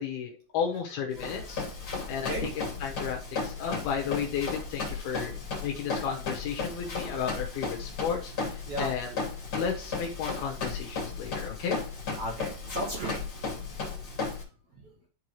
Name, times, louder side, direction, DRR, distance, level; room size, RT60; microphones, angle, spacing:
voice 1, 0.0-1.7 2.1-2.5 2.8-5.4 5.6-9.1 9.5-11.8, left 7 dB, 70° left, 1 dB, 2.8 m, -33 dB
Run, 1.1-14.4, left 4 dB, 35° left, 2.9 m, -35 dB
voice 2, 1.2-1.6 2.2-2.5 5.3-5.4 8.6-8.9 12.2-13.2 14.7-14.9, right 2 dB, 55° right, -3 dB, 2.2 m, -36 dB
12.0 x 4.7 x 3.0 m, 0.38 s
omnidirectional pair, 5.0 m